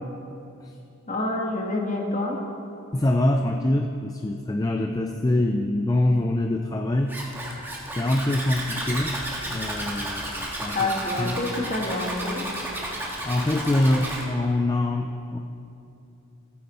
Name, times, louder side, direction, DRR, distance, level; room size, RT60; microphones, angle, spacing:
voice 1, 1.1-2.4 10.7-12.4, left 2 dB, 35° left, 0 dB, 1.5 m, -27 dB
voice 2, 2.9-7.1 8.0-9.2 9.4-10.8 11.2-11.4 13.2-15.4, left 1 dB, 15° left, 4 dB, 0.4 m, -24 dB
Zipper (clothing), 7.1-14.2, right 1 dB, 10° right, 1.5 m, -32 dB
15.0 x 9.4 x 4.2 m, 2.6 s
head